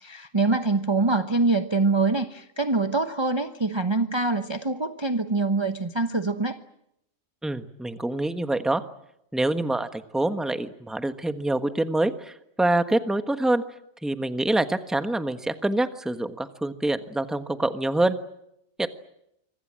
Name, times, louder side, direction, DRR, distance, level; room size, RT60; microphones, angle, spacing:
voice 1, 0.0-6.6, right 3 dB, 20° right, 7 dB, 1.0 m, -24 dB
voice 2, 7.4-8.8 9.3-13.6 14.0-18.2 18.8-18.9, right 2 dB, ahead, 9 dB, 1.2 m, -26 dB
25.5 x 25.0 x 7.6 m, 0.78 s
omnidirectional pair, 1.4 m